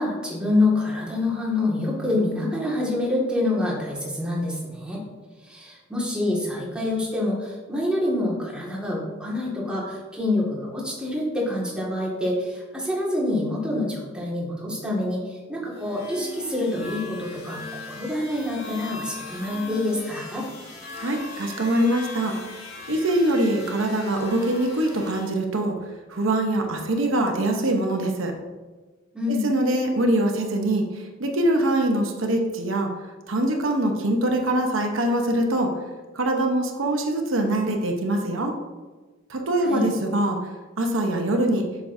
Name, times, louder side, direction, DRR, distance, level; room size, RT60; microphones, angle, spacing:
voice 1, 0.0-5.0 5.4-20.5 29.1-29.5 39.6-39.9, left 2 dB, 5° right, -6 dB, 2.0 m, -26 dB
sound 1, 15.7-25.3, left 3 dB, 75° left, 1.6 m, -39 dB
voice 2, 21.0-22.4 22.9-25.8 26.1-28.3 29.3-30.8 31.2-32.9 33.3-35.7 36.1-38.5 39.3-40.4 40.8-41.6, right 1 dB, 80° right, 3 dB, 0.9 m, -23 dB
8.1 x 6.3 x 2.7 m, 1.3 s
head